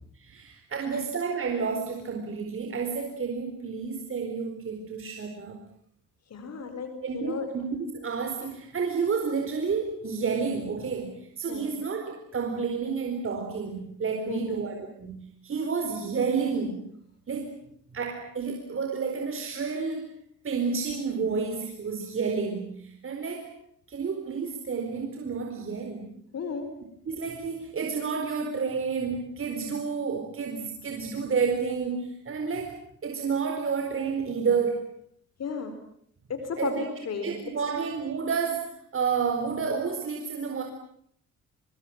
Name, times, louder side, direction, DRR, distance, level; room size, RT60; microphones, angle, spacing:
voice 1, 0.1-5.6 7.0-16.9 17.3-17.6 17.9-20.1 20.4-23.5 23.9-26.2 27.1-32.8 33.0-35.0 36.6-36.8 37.2-40.6, right 5 dB, 45° right, 4 dB, 4.4 m, -30 dB
voice 2, 6.3-7.5 11.5-11.7 14.3-14.9 26.3-26.7 35.4-35.7 36.3-37.3, left 5 dB, 60° left, 8 dB, 4.8 m, -34 dB
25.5 x 22.0 x 9.0 m, 0.66 s
cardioid pair, 90°, 30 cm